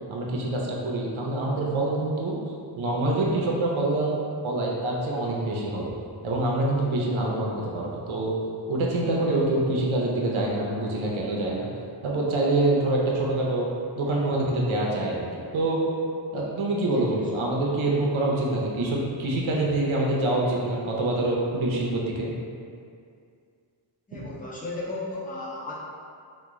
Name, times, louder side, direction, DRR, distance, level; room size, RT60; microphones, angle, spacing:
voice 1, 0.1-2.4 2.8-4.2 4.4-5.9 6.2-8.4 8.7-11.7 12.0-13.7 13.9-15.8 16.3-22.3, right 2 dB, 80° right, -3 dB, 0.6 m, -25 dB
voice 2, 24.1-25.7, left 2 dB, 15° left, -7 dB, 0.7 m, -35 dB
2.9 x 2.2 x 3.5 m, 2.3 s
wide cardioid pair, 75°, 47 cm